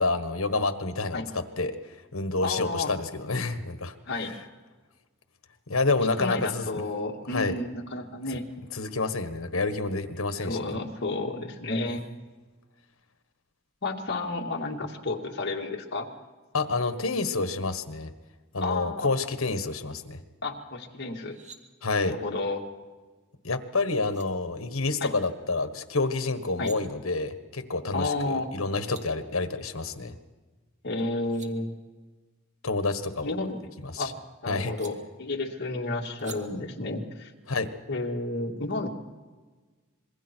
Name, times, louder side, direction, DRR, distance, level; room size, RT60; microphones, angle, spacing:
voice 1, 0.0-1.8 2.1-3.9 5.7-6.7 7.3-7.5 8.7-10.6 16.5-18.1 18.5-20.2 21.8-22.1 23.4-30.1 32.6-33.3 33.8-34.1 34.5-34.7 37.5-37.7, left 3 dB, 85° left, 9 dB, 1.5 m, -28 dB
voice 2, 2.4-2.9 4.1-4.4 6.2-8.5 10.4-12.0 13.8-16.1 18.6-19.1 20.4-21.4 22.1-22.6 25.0-25.1 26.6-26.7 27.9-28.5 30.8-31.7 33.2-33.7 34.0-34.1 34.4-37.3 37.9-38.9, left 2 dB, 55° left, 0 dB, 2.3 m, -31 dB
sound 1, 21.1-21.6 23.7-23.8 24.1-24.3 26.3-26.8 28.4-28.5 28.7-29.0 31.0-31.5 33.0-34.0 34.8-34.9 36.2-36.4, right 5 dB, 35° right, 1.9 m, -48 dB
26.0 x 22.0 x 4.6 m, 1.3 s
head